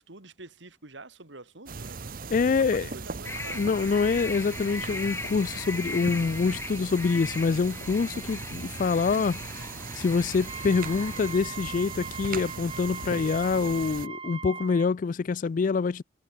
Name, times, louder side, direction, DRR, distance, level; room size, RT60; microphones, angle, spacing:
voice 1, 0.0-3.7, right 2 dB, 70° right, 2.7 m, -47 dB
sound 1, 1.7-14.1, right 4 dB, 50° right, 0.9 m, -39 dB
voice 2, 2.3-2.9 3.5-9.4 9.9-16.0, left 5 dB, 45° left, 0.3 m, -26 dB
sound 2, 3.2-11.3, left 2 dB, 15° left, 5.2 m, -39 dB
Wind instrument woodwind instrument, 10.4-14.9, right 5 dB, 30° right, 3.3 m, -40 dB
head